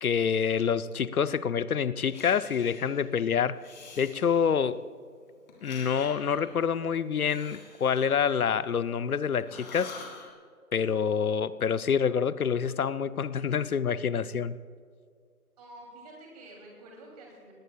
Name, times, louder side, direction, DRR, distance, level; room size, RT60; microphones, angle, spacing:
voice 1, 0.0-3.6 4.0-4.8 5.6-9.9 10.7-14.6, left 7 dB, 70° left, 15 dB, 0.7 m, -27 dB
Breathing, 2.1-3.1 3.6-4.8 5.5-9.1 9.4-10.3, left 4 dB, 30° left, 2.5 m, -48 dB
voice 2, 15.6-17.5, right 1 dB, 25° right, -1 dB, 3.0 m, -48 dB
20.0 x 18.5 x 2.3 m, 2.1 s
figure-of-eight pair, 155°, 46 cm